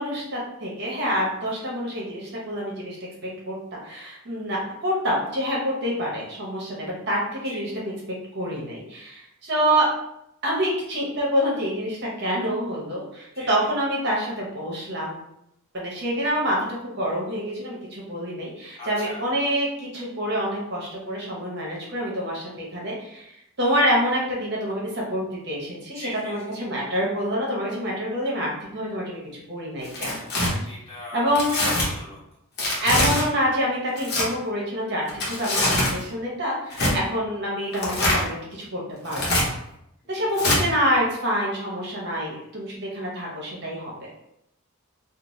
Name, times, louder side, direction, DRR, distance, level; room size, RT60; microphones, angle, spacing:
voice 1, 0.0-3.0 3.5-7.9 8.3-9.9 10.4-15.2 15.7-23.3 23.6-30.2 30.6-30.7 31.1-31.7 32.8-39.2 40.1-44.1, equal, 50° right, -3 dB, 0.8 m, -27 dB
voice 2, 18.8-19.2 25.9-26.6 30.7-31.2 31.8-32.2 40.0-40.8, left 1 dB, 25° left, -8 dB, 1.0 m, -41 dB
Tearing, 29.8-30.5 31.3-31.9 32.6-33.2 33.9-34.2 35.1-36.0 36.7-36.9 37.7-38.2 39.0-39.4 40.4-40.6, left 1 dB, 50° left, 0.8 m, -23 dB
2.7 x 2.0 x 3.0 m, 0.80 s
head